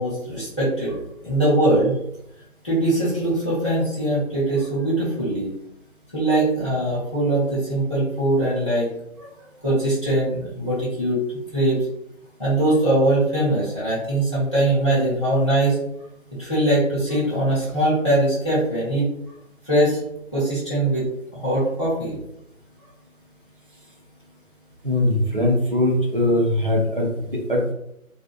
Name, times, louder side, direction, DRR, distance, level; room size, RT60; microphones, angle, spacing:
voice 1, 0.0-2.0 2.6-5.5 6.1-8.9 9.2-9.3 9.6-11.9 12.4-15.8 16.4-19.0 19.6-20.0 20.3-22.2, right 1 dB, 20° left, -12 dB, 1.0 m, -21 dB
voice 2, 24.8-27.7, left 1 dB, 40° right, -2 dB, 0.5 m, -21 dB
2.5 x 2.4 x 2.3 m, 0.79 s
figure-of-eight pair, 170°, 41 cm